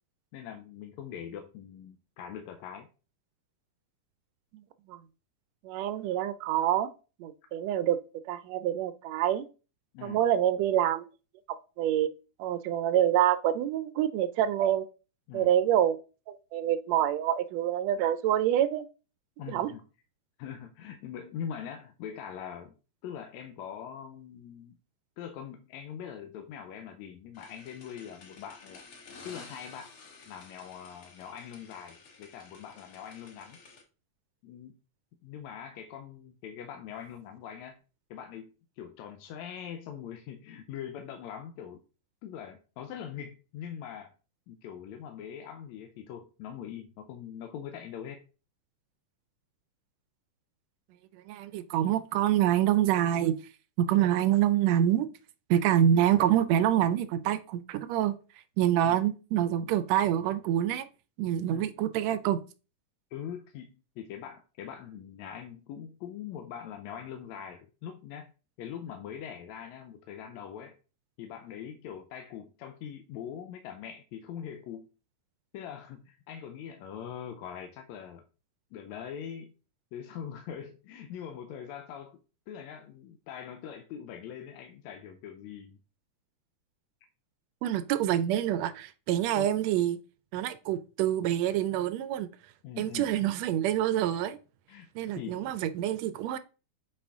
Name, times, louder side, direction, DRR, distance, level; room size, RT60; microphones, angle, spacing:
voice 1, 0.3-2.9 9.9-10.2 15.3-15.5 19.4-19.8 20.4-22.7 23.0-24.8 25.2-28.8 29.3-29.9 30.3-33.6 34.4-34.7 35.2-37.8 38.1-41.8 42.2-44.1 44.5-48.2 58.8-59.0 61.5-61.7 63.1-68.3 68.6-70.8 71.2-74.9 75.5-78.2 78.7-79.5 79.9-82.2 82.5-85.8 89.4-89.6 92.6-93.1 94.7-94.9 95.1-95.6, left 8 dB, 75° left, 1.9 m, -42 dB
voice 2, 5.6-6.9 7.2-8.0 8.3-9.4 10.0-11.0 11.8-12.1 12.4-14.8 15.3-16.0 16.3-18.8 19.5-19.7 51.3-53.3 53.8-55.1 55.5-58.1 58.6-60.9 61.2-62.4 87.6-90.0 90.3-92.3 92.8-94.4 94.9-96.4, right 11 dB, 80° right, 1.6 m, -26 dB
sound 1, 27.3-33.8, left 4 dB, 55° left, 2.0 m, -52 dB
8.6 x 5.0 x 3.6 m
omnidirectional pair, 3.5 m